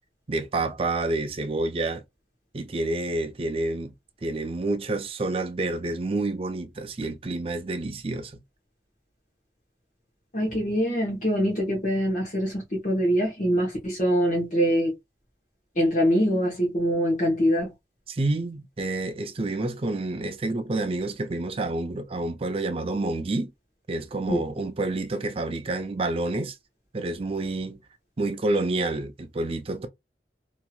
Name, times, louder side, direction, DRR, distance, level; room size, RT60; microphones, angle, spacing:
voice 1, 0.3-2.0 2.5-3.9 4.2-8.4 18.1-23.5 23.9-26.6 26.9-27.8 28.2-29.9, right 2 dB, 30° right, 0.4 m, -28 dB
voice 2, 10.3-14.9 15.8-17.7 24.3-24.4, equal, 45° left, 1.0 m, -24 dB
2.9 x 2.7 x 2.3 m
head